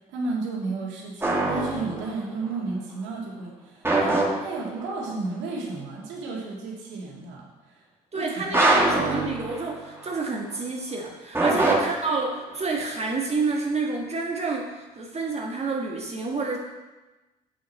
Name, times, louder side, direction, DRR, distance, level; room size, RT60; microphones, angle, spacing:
voice 1, 0.1-7.8 8.1-9.1 11.4-11.6, right 3 dB, 70° right, -2 dB, 2.2 m, -33 dB
sound 1, 1.2-2.3 3.9-4.9 8.5-10.1 11.4-12.6, right 2 dB, 10° right, 1.8 m, -24 dB
voice 2, 8.1-16.6, right 3 dB, 30° right, 0 dB, 1.5 m, -29 dB
7.6 x 6.9 x 4.2 m, 1.1 s
hypercardioid pair, 60°, 20 cm